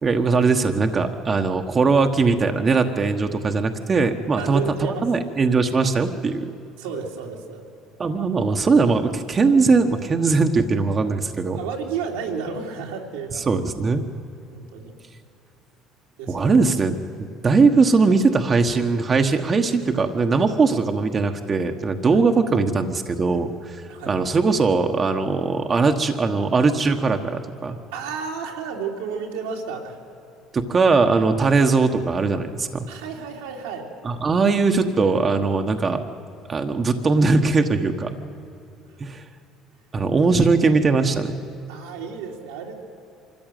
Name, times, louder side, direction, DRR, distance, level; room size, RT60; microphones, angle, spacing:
voice 1, 0.0-6.5 8.0-11.6 13.3-14.0 16.3-27.8 30.5-32.9 34.0-36.0 36.5-38.1 39.0-39.2 39.9-41.4, right 4 dB, 35° right, 5 dB, 1.3 m, -20 dB
voice 2, 4.4-5.0 6.8-7.6 11.5-13.5 14.5-14.9 16.2-16.5 22.1-22.2 23.9-24.1 27.9-30.0 32.9-33.9 41.7-42.8, right 6 dB, 90° right, 0 dB, 2.9 m, -32 dB
24.0 x 14.0 x 9.3 m, 2.7 s
supercardioid pair, 85°, 0 cm